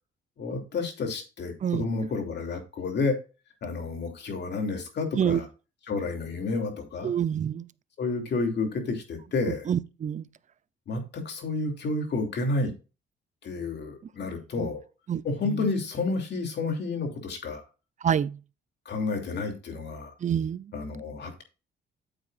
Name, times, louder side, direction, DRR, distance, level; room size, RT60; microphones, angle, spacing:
voice 1, 0.4-3.2 3.6-5.5 5.9-7.1 8.0-9.7 10.9-12.7 13.4-14.8 15.2-17.6 18.8-20.1 20.7-21.4, left 3 dB, 60° left, 2.9 m, -30 dB
voice 2, 7.0-7.6 9.7-10.2 14.6-14.7 15.1-15.7 18.0-18.4 20.2-20.7, right 8 dB, 40° right, 0.5 m, -27 dB
8.9 x 7.8 x 2.5 m
cardioid pair, 90°, 20 cm